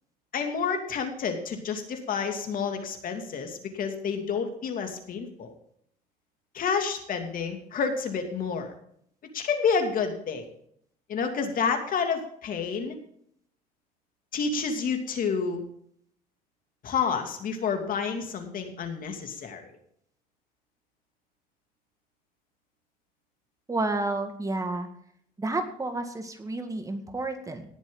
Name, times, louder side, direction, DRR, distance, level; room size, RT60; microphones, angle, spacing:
voice 1, 0.3-5.5 6.5-8.7 9.3-10.4 11.1-12.9 14.3-15.6 16.8-19.6, left 5 dB, 55° left, 5 dB, 2.6 m, -29 dB
voice 2, 23.7-24.9 25.4-27.7, right 2 dB, 20° right, 6 dB, 2.0 m, -30 dB
18.5 x 7.4 x 3.9 m, 0.66 s
cardioid pair, 110°, 17 cm